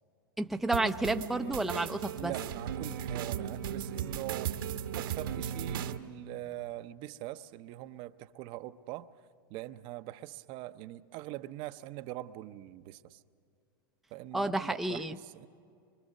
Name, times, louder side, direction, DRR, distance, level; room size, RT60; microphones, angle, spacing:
voice 1, 0.4-2.3 14.3-15.2, right 2 dB, ahead, 0.5 m, -31 dB
sound 1, 0.7-6.0, right 9 dB, 75° right, 1.2 m, -36 dB
voice 2, 2.1-4.6 4.9-9.1 9.5-13.2 14.1-15.5, right 16 dB, 45° right, 0.6 m, -42 dB
24.5 x 24.5 x 6.5 m
hypercardioid pair, 125°, 12 cm